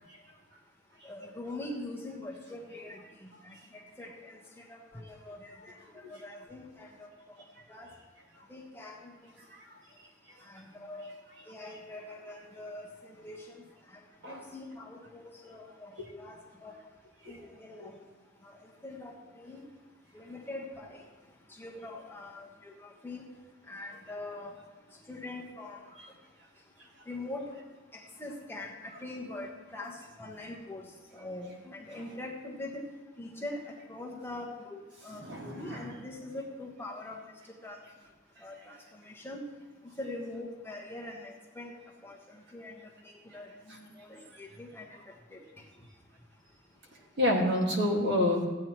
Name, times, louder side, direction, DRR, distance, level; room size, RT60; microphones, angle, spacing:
voice 1, 1.0-7.1 7.4-7.9 8.5-9.1 10.4-11.1 11.5-14.0 14.3-16.8 17.3-18.0 18.4-19.6 20.1-21.0 21.5-23.3 23.7-24.5 25.1-25.8 27.1-27.5 27.9-32.8 33.2-37.2 37.6-37.8 38.4-38.8 39.0-39.4 40.0-41.7 42.0-42.7 43.0-45.4, left 2 dB, 10° left, -2 dB, 1.2 m, -43 dB
voice 2, 35.2-35.9 47.2-48.4, left 1 dB, 55° right, -1 dB, 2.0 m, -29 dB
15.5 x 8.7 x 3.1 m, 1.3 s
head